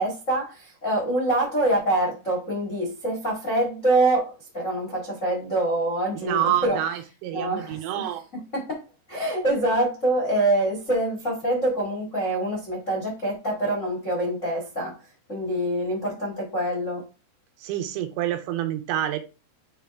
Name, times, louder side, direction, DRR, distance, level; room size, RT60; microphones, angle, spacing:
voice 1, 0.0-6.8 7.3-8.1 8.5-8.8 9.1-17.0, right 1 dB, 55° left, 0.8 m, -25 dB
voice 2, 6.2-8.3 17.6-19.2, right 12 dB, 85° right, 2.8 m, -27 dB
8.6 x 3.3 x 3.4 m
omnidirectional pair, 5.2 m